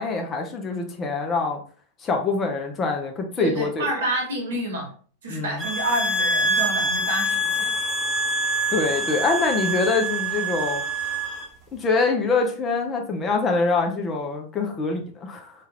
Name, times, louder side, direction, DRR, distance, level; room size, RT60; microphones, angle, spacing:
voice 1, 0.0-1.6 2.0-3.9 5.3-5.6 8.7-10.8 11.7-15.5, left 4 dB, 25° left, 0.6 m, -24 dB
voice 2, 3.4-4.9 5.2-7.7, right 2 dB, 60° right, 1.1 m, -28 dB
sound 1, 5.6-11.4, right 1 dB, ahead, 1.0 m, -25 dB
2.8 x 2.4 x 2.8 m
figure-of-eight pair, 90°, 0 cm